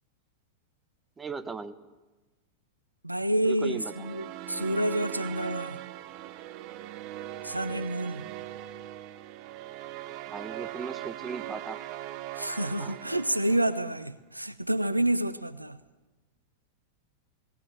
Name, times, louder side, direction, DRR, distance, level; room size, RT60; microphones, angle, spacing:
voice 1, 1.2-1.8 3.4-3.9 10.3-11.8 12.8-12.9, right 4 dB, 15° right, 1.2 m, -37 dB
voice 2, 3.0-5.8 7.4-8.3 12.3-15.8, right 1 dB, 85° right, 0.7 m, -29 dB
sound 1, 3.6-14.0, right 14 dB, 40° right, 0.9 m, -40 dB
19.0 x 18.0 x 9.0 m
figure-of-eight pair, 90°, 0 cm